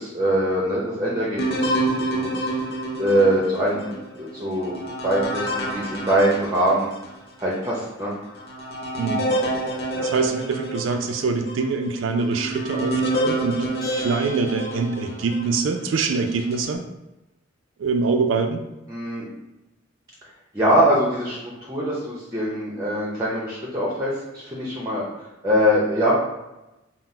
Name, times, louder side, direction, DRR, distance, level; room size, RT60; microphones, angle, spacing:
voice 1, 0.0-2.7 3.0-3.9 4.2-4.8 5.0-7.0 7.4-8.1 9.9-10.1 18.9-19.3 20.5-25.0 25.4-26.1, equal, 15° right, -4 dB, 0.7 m, -23 dB
sound 1, 1.4-7.1 7.7-7.8 8.3-15.5 16.1-16.7, right 1 dB, 55° left, 0.6 m, -28 dB
voice 2, 9.0-9.3 10.0-13.7 13.9-16.8 17.8-18.6, right 4 dB, 70° right, 5 dB, 0.4 m, -24 dB
Bell, 13.8-15.4, left 3 dB, 20° left, 1.0 m, -40 dB
4.0 x 2.0 x 4.2 m, 0.97 s
head